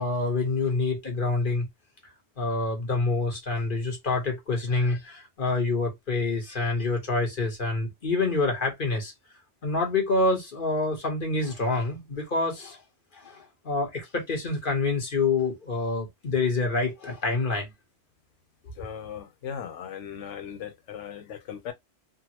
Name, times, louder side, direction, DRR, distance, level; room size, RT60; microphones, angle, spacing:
voice 1, 0.0-1.7 2.4-9.1 9.6-12.8 13.1-17.7, left 3 dB, 45° left, 1.2 m, -27 dB
voice 2, 18.8-21.7, left 8 dB, 85° left, 1.0 m, -38 dB
3.6 x 2.0 x 2.8 m
omnidirectional pair, 1.2 m